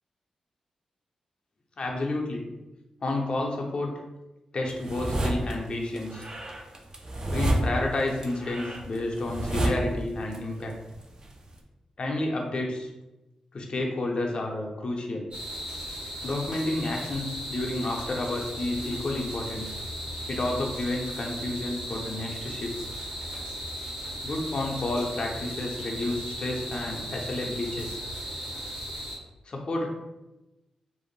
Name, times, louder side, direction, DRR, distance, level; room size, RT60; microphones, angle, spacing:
voice 1, 1.8-2.4 3.0-3.9 4.5-6.3 7.3-10.7 12.0-12.9 13.5-15.3 16.2-19.7 20.3-22.7 24.2-28.0 29.5-29.9, left 2 dB, 55° left, 0 dB, 0.6 m, -30 dB
sound 1, 4.7-5.5 5.9-10.4 10.6-11.6, right 1 dB, 40° right, 0.4 m, -30 dB
sound 2, 15.3-29.2, equal, 60° right, 1.2 m, -37 dB
2.6 x 2.1 x 3.1 m, 1.0 s
supercardioid pair, 45°, 2 cm